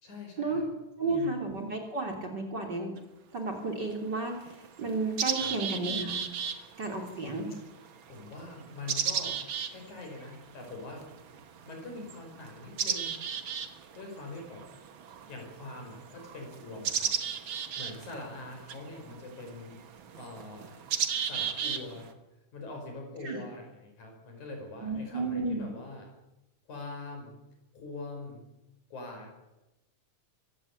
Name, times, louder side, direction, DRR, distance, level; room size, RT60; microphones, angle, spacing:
voice 1, 0.0-0.6 1.0-1.4 5.4-5.6 6.5-6.6 8.1-9.4 9.7-11.0 11.7-13.1 13.9-14.6 15.3-17.1 17.8-19.8 20.2-20.8 21.2-22.1 22.5-26.1 26.7-27.3 27.7-28.4 28.9-29.5, left 2 dB, 65° left, 2 dB, 6.8 m, -43 dB
voice 2, 1.0-2.9 3.3-4.3 4.8-6.2 6.8-7.5 23.2-23.4 24.8-25.7, right 3 dB, 35° right, 3 dB, 3.5 m, -32 dB
sound 1, 3.0-3.1 3.9-4.0 4.4-22.1, right 8 dB, 50° right, 1.8 m, -36 dB
23.0 x 16.0 x 8.7 m, 0.96 s
omnidirectional pair, 3.6 m